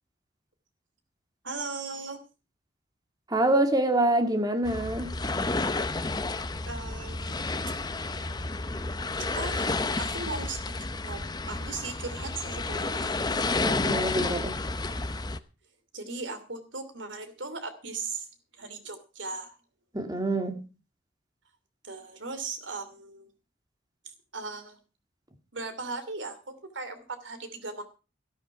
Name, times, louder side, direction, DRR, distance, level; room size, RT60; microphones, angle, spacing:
voice 1, 1.4-2.2 6.7-7.5 9.2-9.7 10.0-10.7 11.0-13.2 15.9-18.3 18.6-19.6 21.8-23.3 24.3-24.8 25.5-27.8, right 3 dB, 75° right, 2.9 m, -38 dB
voice 2, 3.3-5.1 13.6-14.6 19.9-20.6, right 1 dB, 20° right, 2.0 m, -26 dB
sound 1, 4.6-15.4, left 3 dB, 20° left, 0.7 m, -31 dB
14.0 x 12.5 x 4.6 m
head